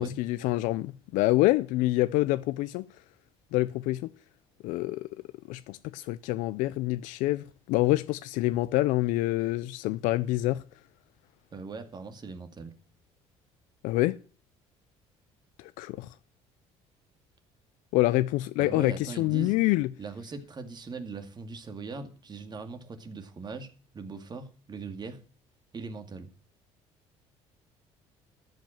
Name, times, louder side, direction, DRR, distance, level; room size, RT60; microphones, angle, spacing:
voice 1, 0.0-2.9 3.5-4.0 4.6-5.0 5.5-10.6 13.8-14.2 15.6-16.1 17.9-19.9, left 18 dB, 80° left, 0.5 m, -26 dB
voice 2, 11.5-12.7 18.6-19.5 20.0-25.2 25.7-26.3, right 4 dB, 35° right, 2.1 m, -40 dB
13.5 x 5.3 x 8.9 m
supercardioid pair, 90°, 13 cm